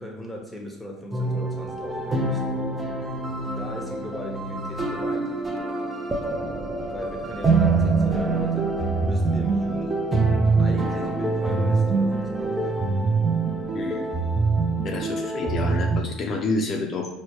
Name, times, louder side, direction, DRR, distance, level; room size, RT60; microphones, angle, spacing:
voice 1, 0.0-2.5 3.6-5.4 6.9-10.2 10.6-12.9, equal, ahead, 0 dB, 0.9 m, -38 dB
sound 1, 1.1-16.0, right 3 dB, 15° right, 0.5 m, -24 dB
voice 2, 13.7-14.1 14.8-17.1, left 3 dB, 40° left, 1 dB, 0.5 m, -28 dB
4.1 x 2.1 x 3.0 m, 0.87 s
supercardioid pair, 90°, 0 cm